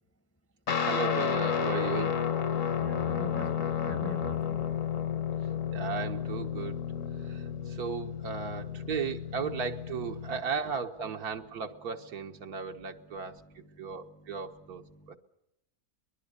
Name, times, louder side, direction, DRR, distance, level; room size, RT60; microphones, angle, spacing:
Guitar, 0.7-10.4, left 8 dB, 65° left, 1.4 m, -32 dB
voice 1, 0.8-2.2 5.7-6.8 7.2-13.4 13.8-14.8 15.1-15.2, right 6 dB, 85° right, 1.8 m, -35 dB
voice 2, 2.8-4.7 10.3-10.5 11.1-11.2, left 1 dB, 15° left, 0.6 m, -42 dB
23.5 x 20.5 x 6.8 m
omnidirectional pair, 1.6 m